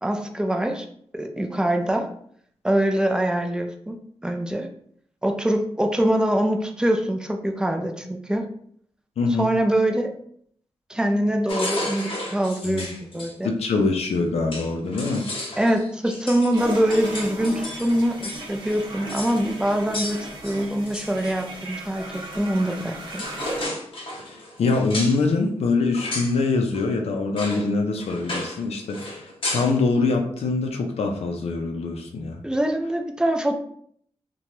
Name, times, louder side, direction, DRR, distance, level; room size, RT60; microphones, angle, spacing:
voice 1, 0.0-0.9 1.1-2.1 2.6-4.0 4.2-4.7 5.2-8.5 9.3-10.1 10.9-13.5 15.6-23.2 32.4-33.5, right 1 dB, 5° right, 4 dB, 0.3 m, -24 dB
voice 2, 9.2-9.5 12.6-12.9 13.4-15.3 24.2-32.4, left 3 dB, 75° left, 3 dB, 0.4 m, -24 dB
sound 1, 11.5-13.3 14.1-14.2 14.5-18.4 18.7-18.8 19.1-19.4 19.9-21.4 22.7-22.8 23.1-25.2 25.9-26.4 26.7-26.9 27.4-27.7 28.0-28.6 28.9-29.7, left 1 dB, 55° left, 0.8 m, -33 dB
sound 2, 16.5-23.7, right 1 dB, 45° right, 0.8 m, -37 dB
2.9 x 2.2 x 2.9 m, 0.64 s
wide cardioid pair, 120°, 11 cm